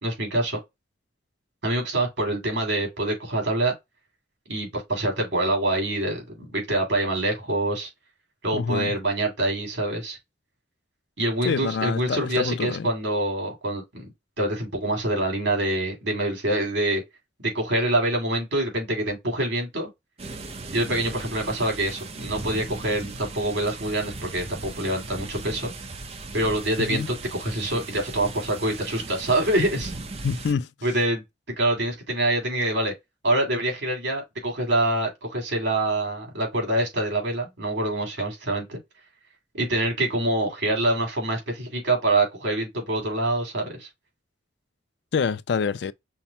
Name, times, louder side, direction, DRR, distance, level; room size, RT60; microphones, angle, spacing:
voice 1, 0.0-0.6 1.6-3.7 4.5-7.9 8.4-10.2 11.2-14.1 14.4-17.0 17.4-19.9 20.7-25.7 26.3-29.9 30.8-31.2 31.6-32.9 33.2-38.8 39.5-43.9, right 1 dB, 80° right, 2.8 m, -25 dB
voice 2, 8.5-8.9 11.4-12.9 26.9-27.1 30.2-30.7 45.1-45.9, left 5 dB, 70° left, 0.4 m, -26 dB
sound 1, 20.2-30.5, right 3 dB, 35° right, 0.6 m, -38 dB
5.7 x 2.0 x 4.1 m
head